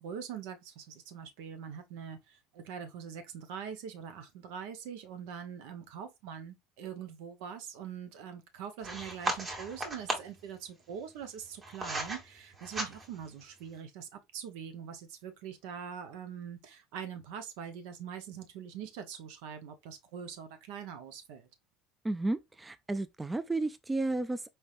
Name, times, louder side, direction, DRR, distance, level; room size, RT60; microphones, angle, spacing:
voice 1, 0.0-21.5, right 8 dB, 80° right, 0.8 m, -43 dB
sound 1, 8.8-10.4 11.2-12.2 12.6-13.3, right 2 dB, 30° right, 1.4 m, -36 dB
voice 2, 22.0-24.5, right 2 dB, 15° right, 0.3 m, -32 dB
4.3 x 3.3 x 2.5 m
supercardioid pair, 115°, 0 cm